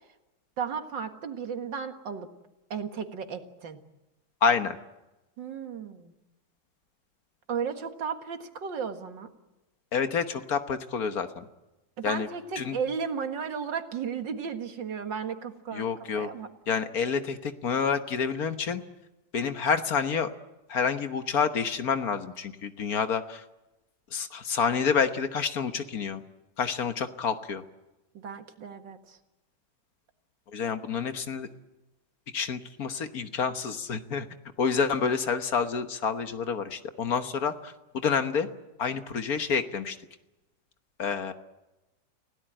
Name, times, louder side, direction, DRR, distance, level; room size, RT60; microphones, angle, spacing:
voice 1, 0.6-2.3 2.7-3.8 5.4-6.1 7.5-9.3 12.0-15.9 16.1-16.5 28.1-29.2, right 6 dB, 90° right, 7 dB, 2.4 m, -34 dB
voice 2, 4.4-4.8 9.9-11.5 12.0-12.3 12.6-12.8 15.7-16.3 16.7-18.8 19.3-20.3 20.7-23.4 24.1-26.2 26.6-27.6 30.5-31.5 32.3-34.3 34.6-38.5 38.8-40.0 41.0-41.3, left 6 dB, 55° left, 9 dB, 1.6 m, -28 dB
30.0 x 17.0 x 8.9 m, 1.0 s
omnidirectional pair, 1.9 m